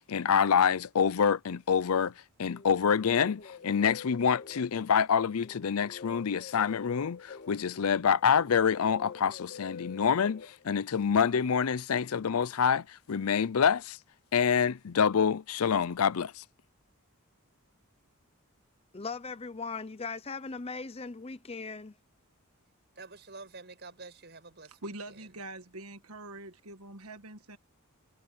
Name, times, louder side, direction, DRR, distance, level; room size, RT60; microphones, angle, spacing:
voice 1, 0.0-2.1 2.4-14.0 14.3-16.4, left 7 dB, 75° left, 0.5 m, -26 dB
sound 1, 2.5-11.2, left 6 dB, 50° left, 1.6 m, -46 dB
voice 2, 18.9-21.9, left 4 dB, 25° left, 0.7 m, -39 dB
voice 3, 22.9-25.4, right 3 dB, 50° right, 6.3 m, -49 dB
voice 4, 24.8-27.6, right 2 dB, 80° right, 1.6 m, -44 dB
head